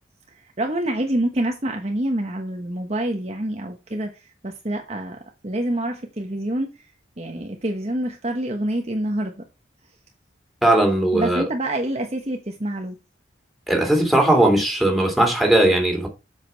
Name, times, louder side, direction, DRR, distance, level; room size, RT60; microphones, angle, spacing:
voice 1, 0.3-5.2 5.4-6.8 7.2-9.4 11.1-13.0, right 1 dB, 35° right, 1.2 m, -27 dB
voice 2, 10.6-11.4 13.7-16.1, right 1 dB, ahead, 3.1 m, -18 dB
8.0 x 7.6 x 4.6 m
head